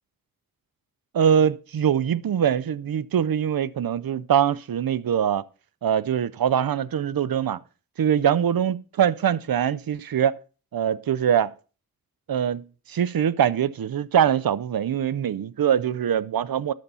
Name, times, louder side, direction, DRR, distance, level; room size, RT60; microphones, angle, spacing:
voice 1, 1.1-5.4 5.8-7.6 8.0-10.4 10.7-11.5 12.3-16.7, right 9 dB, 80° right, 0.5 m, -23 dB
10.5 x 6.8 x 5.4 m
wide cardioid pair, 55°, 34 cm